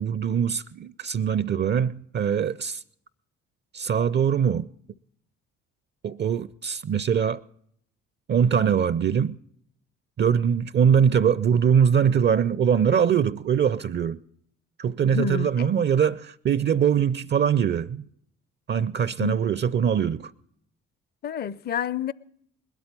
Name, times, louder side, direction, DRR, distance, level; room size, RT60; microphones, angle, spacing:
voice 1, 0.0-2.8 3.7-4.7 6.0-7.4 8.3-9.4 10.2-14.2 14.8-18.0 18.7-20.3, right 8 dB, 30° right, 0.5 m, -22 dB
voice 2, 15.1-15.7 19.2-19.4 21.2-22.1, left 9 dB, 25° left, 0.5 m, -29 dB
21.0 x 8.3 x 5.4 m
figure-of-eight pair, 45°, 37 cm